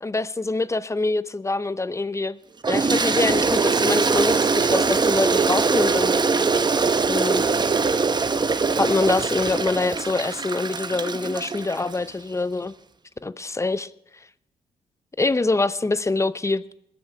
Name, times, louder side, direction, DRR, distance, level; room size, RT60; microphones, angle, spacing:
voice 1, 0.0-2.4 2.7-6.2 7.1-7.4 8.8-12.7 13.2-13.9 15.2-16.6, left 3 dB, 20° left, 15 dB, 0.7 m, -25 dB
Toilet flush, 2.6-12.0, right 4 dB, 30° right, 0.8 m, -22 dB
21.0 x 7.4 x 4.9 m, 0.80 s
hypercardioid pair, 45°, 14 cm